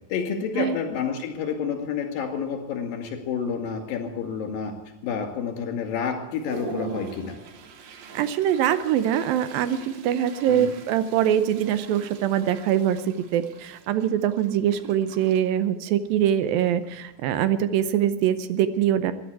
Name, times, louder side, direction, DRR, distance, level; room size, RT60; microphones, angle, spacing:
voice 1, 0.1-4.7 5.0-7.4 10.5-10.7, left 6 dB, 75° left, 5 dB, 3.9 m, -29 dB
Toilet flush, 1.1-1.2 1.7-1.9 2.2-2.8 3.3-3.4 3.7-4.4 4.9-5.0 5.5-5.6 6.0-18.0, right 4 dB, 60° right, 2.0 m, -43 dB
voice 2, 8.1-19.1, right 10 dB, 80° right, 12 dB, 2.5 m, -23 dB
14.0 x 10.5 x 8.2 m, 1.0 s
omnidirectional pair, 4.2 m